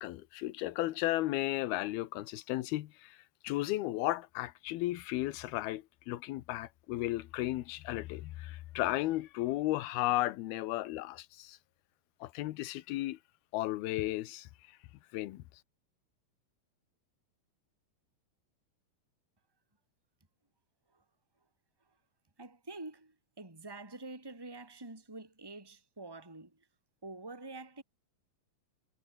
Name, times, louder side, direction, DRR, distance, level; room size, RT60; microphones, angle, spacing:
voice 1, 0.0-3.2 3.4-11.6 12.2-13.2 13.5-14.5 15.1-15.4, left 16 dB, 80° left, 2.8 m, -34 dB
voice 2, 22.4-26.7 27.0-27.8, right 2 dB, 5° right, 3.9 m, -47 dB
omnidirectional pair, 4.4 m